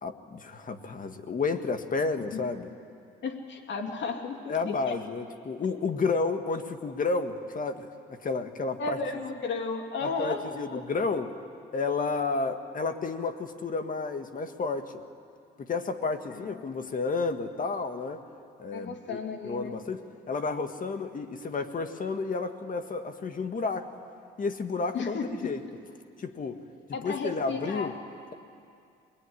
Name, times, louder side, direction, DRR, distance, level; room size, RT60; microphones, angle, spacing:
voice 1, 0.0-2.7 4.5-9.0 10.0-11.3 11.7-14.9 15.6-18.2 18.6-23.9 24.4-25.6 26.2-26.6 27.0-27.9, left 4 dB, 45° left, 8 dB, 1.7 m, -31 dB
voice 2, 3.2-5.0 8.8-10.8 16.3-16.6 18.7-19.8 24.9-25.5 26.9-27.9, left 4 dB, 65° left, 4 dB, 2.8 m, -34 dB
22.0 x 21.5 x 9.8 m, 2.4 s
cardioid pair, 90°, 20 cm